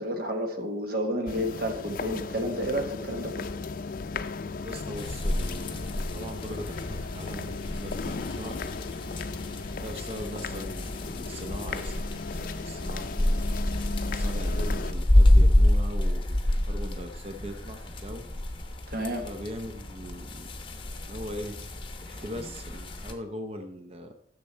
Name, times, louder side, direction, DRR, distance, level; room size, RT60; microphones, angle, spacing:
voice 1, 0.0-3.5 18.9-19.3, equal, 55° right, 4 dB, 1.5 m, -30 dB
sound 1, 1.3-14.9, left 4 dB, 50° left, 0.5 m, -36 dB
voice 2, 4.6-8.5 9.8-12.1 12.3-13.4 13.9-16.2 16.6-18.2 19.2-20.5 21.1-21.5 22.0-24.1, equal, 35° right, 7 dB, 0.6 m, -40 dB
sound 2, 5.0-23.1, left 1 dB, 30° left, 1.0 m, -28 dB
10.5 x 6.7 x 4.4 m, 0.76 s
head